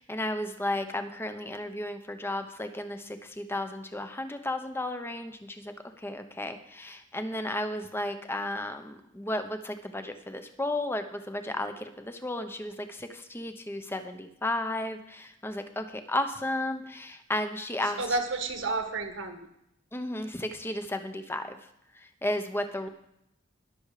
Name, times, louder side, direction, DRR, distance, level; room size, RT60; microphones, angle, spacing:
voice 1, 0.0-18.2 19.9-21.6 21.9-22.9, left 1 dB, 10° left, 8 dB, 1.0 m, -34 dB
voice 2, 18.0-19.5, right 3 dB, 65° right, 6 dB, 1.8 m, -31 dB
21.0 x 7.2 x 5.0 m, 0.78 s
head